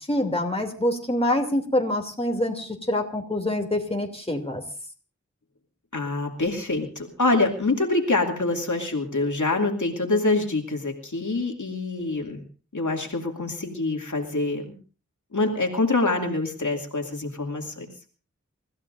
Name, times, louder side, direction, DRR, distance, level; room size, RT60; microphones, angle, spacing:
voice 1, 0.1-4.6, left 1 dB, 20° left, 3 dB, 2.9 m, -25 dB
voice 2, 5.9-12.4 12.7-14.6 15.3-17.9, left 2 dB, 80° left, 1 dB, 2.6 m, -25 dB
29.0 x 15.0 x 2.6 m, 0.36 s
wide cardioid pair, 45°, 29 cm